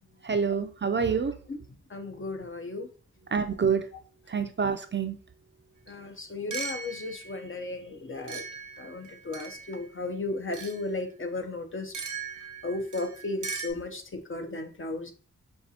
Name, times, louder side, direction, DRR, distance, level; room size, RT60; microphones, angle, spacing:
voice 1, 0.2-1.3 3.3-3.9 4.3-5.2, right 6 dB, 40° right, 8 dB, 0.4 m, -27 dB
voice 2, 1.9-2.9 5.9-8.5 8.8-11.9 12.3-15.1, left 2 dB, 45° left, 6 dB, 0.7 m, -35 dB
sound 1, 5.9-6.0 6.5-7.4 8.3-9.8 10.5-10.8 11.9-13.7, right 5 dB, 75° right, 0.7 m, -38 dB
5.3 x 2.4 x 2.7 m, 0.40 s
cardioid pair, 55°, 30 cm